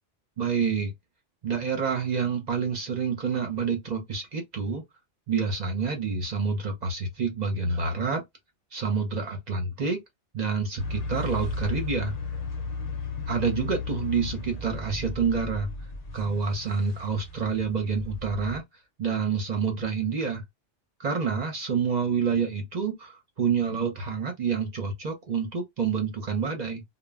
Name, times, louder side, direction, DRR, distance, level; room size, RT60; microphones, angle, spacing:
voice 1, 0.4-0.9 1.4-4.8 5.3-8.2 8.7-10.0 10.3-12.1 13.3-15.7 16.1-18.6 19.0-20.4 21.0-26.8, right 5 dB, 45° right, 0.7 m, -28 dB
sound 1, 10.8-18.6, left 3 dB, 45° left, 0.6 m, -34 dB
2.1 x 2.0 x 3.3 m
omnidirectional pair, 1.2 m